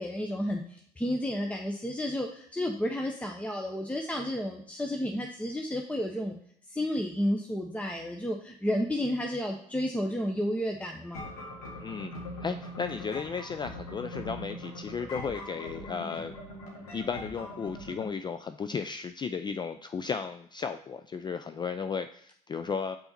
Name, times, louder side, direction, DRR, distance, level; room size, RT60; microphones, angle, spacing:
voice 1, 0.0-6.4 6.7-11.2, equal, 5° left, 2 dB, 0.8 m, -31 dB
sound 1, 11.1-18.1, left 1 dB, 85° left, 1.9 m, -41 dB
voice 2, 11.8-12.1 12.4-16.4 16.9-23.0, left 6 dB, 25° left, 9 dB, 0.4 m, -34 dB
5.6 x 4.0 x 4.2 m, 0.64 s
hypercardioid pair, 60°, 19 cm